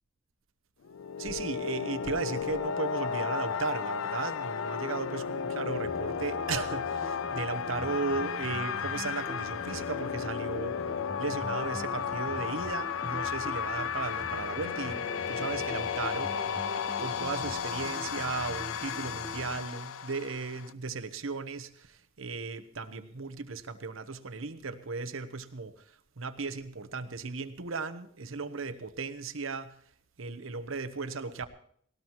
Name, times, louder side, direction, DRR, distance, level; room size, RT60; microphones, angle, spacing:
sound 1, 0.8-20.7, left 7 dB, 90° left, 0.5 m, -34 dB
voice 1, 1.2-10.8 11.2-16.5 17.0-25.8 26.2-29.7 30.2-31.5, right 4 dB, 85° right, 10 dB, 1.0 m, -36 dB
sound 2, 5.8-19.6, left 1 dB, 40° left, 3.2 m, -44 dB
19.0 x 18.5 x 3.1 m, 0.63 s
head